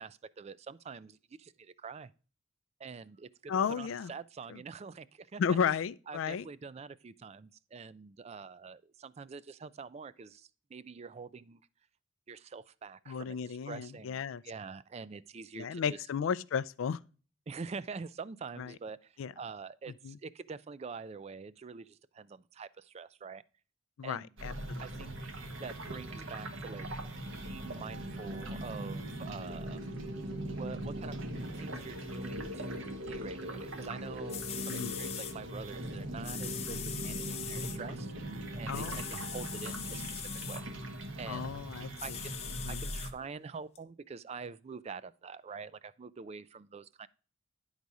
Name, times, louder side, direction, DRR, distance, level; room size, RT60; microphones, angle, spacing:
voice 1, 0.0-2.1 2.8-5.6 6.1-11.6 12.3-16.0 17.5-23.4 24.0-24.3 24.8-25.1 25.6-26.9 27.4-29.8 30.6-31.1 31.6-38.1 38.6-40.7 41.2-41.5 42.0-47.1, right 5 dB, 35° right, 0.3 m, -45 dB
voice 2, 3.5-4.1 4.5-4.6 5.4-6.5 13.1-14.4 15.6-17.0 18.6-18.7 19.2-19.3 20.0-20.2 24.0-25.1 34.7-35.0 38.7-39.0 41.3-42.2 42.5-42.8, left 7 dB, 90° left, 0.4 m, -34 dB
sound 1, 24.4-43.1, right 1 dB, 80° right, 1.2 m, -40 dB
sound 2, 34.0-34.1 34.3-35.3 36.2-37.8 38.7-40.6 42.0-43.1 43.8-43.9, left 9 dB, 35° left, 0.7 m, -41 dB
10.5 x 4.0 x 4.7 m
head